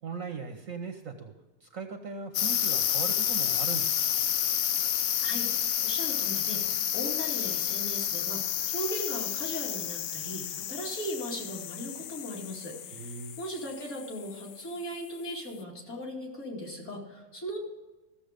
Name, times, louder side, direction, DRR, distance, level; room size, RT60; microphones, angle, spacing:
voice 1, 0.0-1.3 1.6-4.3 12.9-13.4, right 5 dB, 55° right, 5 dB, 1.1 m, -39 dB
sound 1, 2.3-14.7, left 10 dB, 70° left, 0.9 m, -30 dB
voice 2, 5.2-13.1 13.4-17.6, equal, 40° left, -3 dB, 2.8 m, -38 dB
14.5 x 7.0 x 5.1 m, 1.2 s
omnidirectional pair, 1.9 m